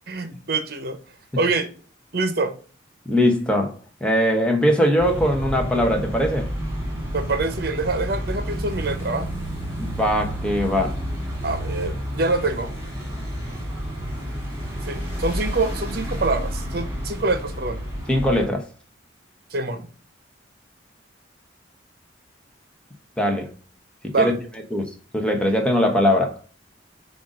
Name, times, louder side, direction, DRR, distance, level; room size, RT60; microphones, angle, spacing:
voice 1, 0.1-1.0 1.4-1.7 2.1-2.5 7.1-9.3 11.4-12.7 14.9-17.8 19.5-19.9 24.1-24.4, right 3 dB, 55° right, 0.9 m, -25 dB
voice 2, 3.1-3.7 4.0-6.5 9.8-11.0 18.1-18.7 23.2-23.5 24.2-24.4 24.7-24.8 25.1-26.4, equal, 5° left, 0.9 m, -20 dB
sound 1, 5.0-18.5, equal, 15° right, 2.0 m, -30 dB
7.8 x 2.6 x 4.9 m
head